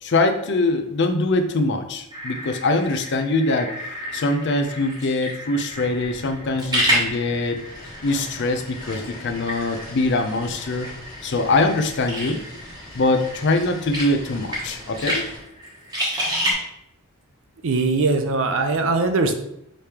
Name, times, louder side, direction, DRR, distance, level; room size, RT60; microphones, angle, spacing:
voice 1, 0.0-3.7 4.1-7.6 8.0-10.9 11.2-12.4 12.9-15.3, left 2 dB, 55° left, 7 dB, 0.5 m, -23 dB
sound 1, 2.1-16.5, equal, 20° right, 1.1 m, -30 dB
sound 2, 5.7-15.4, left 1 dB, 20° left, 1.6 m, -42 dB
voice 2, 17.6-19.3, right 3 dB, 60° right, 7 dB, 0.5 m, -21 dB
5.1 x 3.3 x 2.8 m, 0.79 s
head